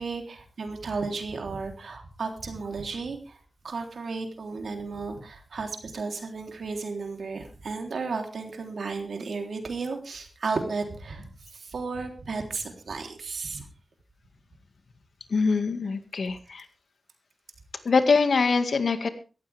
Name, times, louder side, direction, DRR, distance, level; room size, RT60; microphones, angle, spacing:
voice 1, 0.0-3.4 3.6-13.7, right 4 dB, 80° right, 4 dB, 3.5 m, -34 dB
voice 2, 15.3-16.7 17.9-19.1, left 4 dB, 75° left, 9 dB, 2.0 m, -23 dB
18.0 x 14.5 x 3.5 m, 0.34 s
wide cardioid pair, 100°, 0 cm